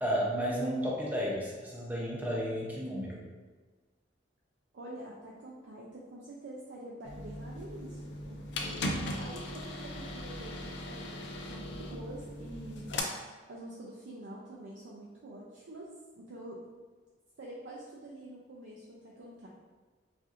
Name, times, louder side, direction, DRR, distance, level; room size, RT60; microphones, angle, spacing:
voice 1, 0.0-3.2, equal, 10° right, -4 dB, 0.6 m, -32 dB
voice 2, 4.7-13.1 13.5-16.6 17.4-19.5, right 1 dB, 70° right, -4 dB, 0.5 m, -47 dB
sound 1, 7.0-13.0, left 1 dB, 65° left, 0.4 m, -38 dB
4.2 x 2.5 x 2.4 m, 1.3 s
head